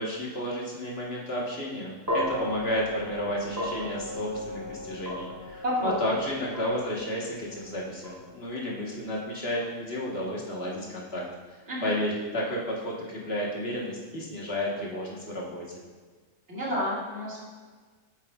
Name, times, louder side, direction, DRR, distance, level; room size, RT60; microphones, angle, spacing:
voice 1, 0.0-11.2 11.5-15.6, equal, 55° left, -3 dB, 1.5 m, -32 dB
sound 1, 2.1-10.4, left 1 dB, 15° right, 1.3 m, -37 dB
voice 2, 5.6-6.2 11.7-11.9 16.5-17.4, equal, 60° right, -6 dB, 2.3 m, -30 dB
8.4 x 7.6 x 2.3 m, 1.5 s
omnidirectional pair, 1.3 m